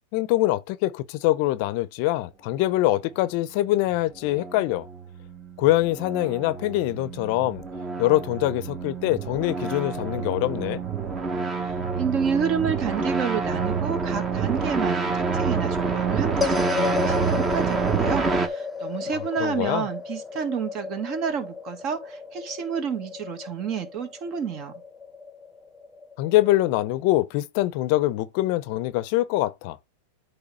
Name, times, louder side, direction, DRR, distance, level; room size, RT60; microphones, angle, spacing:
voice 1, 0.1-4.9 5.6-7.6 8.0-10.8 19.1-19.9 26.2-29.8, left 16 dB, 55° left, 0.6 m, -24 dB
sound 1, 3.9-18.5, right 5 dB, 20° right, 1.3 m, -28 dB
voice 2, 12.0-24.7, right 7 dB, 40° right, 1.8 m, -30 dB
sound 2, 16.4-26.8, left 5 dB, 5° left, 1.1 m, -33 dB
8.7 x 3.3 x 5.5 m
hypercardioid pair, 125°, 0 cm